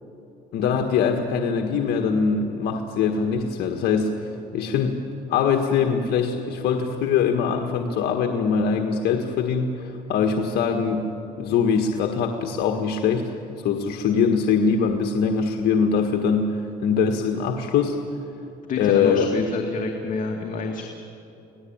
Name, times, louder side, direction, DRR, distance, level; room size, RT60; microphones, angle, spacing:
voice 1, 0.5-4.1 4.5-4.9 5.3-11.1 11.4-13.3 13.6-18.0 18.8-19.3, left 6 dB, 75° left, 4 dB, 1.6 m, -22 dB
voice 2, 18.7-20.8, left 4 dB, 50° left, 2 dB, 2.2 m, -28 dB
26.0 x 17.5 x 8.8 m, 2.8 s
cardioid pair, 110°, 17 cm